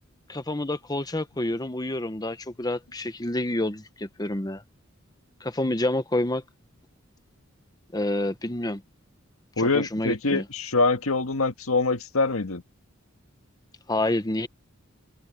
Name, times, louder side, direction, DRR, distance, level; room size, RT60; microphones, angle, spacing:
voice 1, 0.3-4.6 5.4-6.4 7.9-8.8 9.6-10.4 13.9-14.5, left 1 dB, 20° left, 1.0 m, -28 dB
voice 2, 9.6-12.6, left 3 dB, 85° left, 1.8 m, -24 dB
head